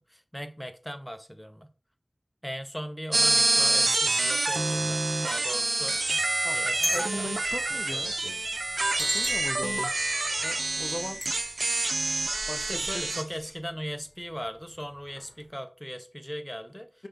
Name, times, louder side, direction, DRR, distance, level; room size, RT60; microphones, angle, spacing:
voice 1, 0.0-1.7 2.4-6.0 6.5-7.3 7.7-8.2 12.7-17.1, equal, 5° left, 0.6 m, -39 dB
sound 1, 3.1-13.2, right 2 dB, 80° right, 0.4 m, -27 dB
sound 2, 5.9-13.1 13.4-13.5 14.4-14.7 15.1-15.3, left 1 dB, 20° left, 0.9 m, -38 dB
voice 2, 6.4-8.2 9.0-9.9 10.4-11.2 12.5-13.2, left 1 dB, 55° left, 0.6 m, -38 dB
sound 3, 7.2-13.6, right 1 dB, 45° right, 1.9 m, -50 dB
5.4 x 2.7 x 3.6 m
wide cardioid pair, 40°, 0 cm